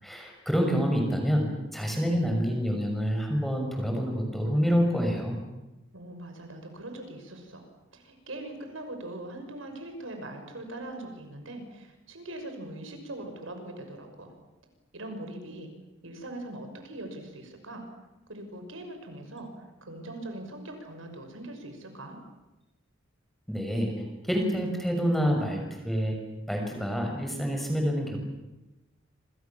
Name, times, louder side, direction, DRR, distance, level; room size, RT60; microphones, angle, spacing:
voice 1, 0.0-1.5 1.7-5.4 23.5-23.9 24.3-26.2 26.5-28.2, equal, ahead, 2 dB, 6.4 m, -27 dB
voice 2, 5.9-14.3 14.9-15.7 16.0-17.9 18.3-19.5 19.8-22.2, right 1 dB, 85° right, 5 dB, 6.2 m, -41 dB
28.0 x 27.0 x 7.3 m, 1.0 s
head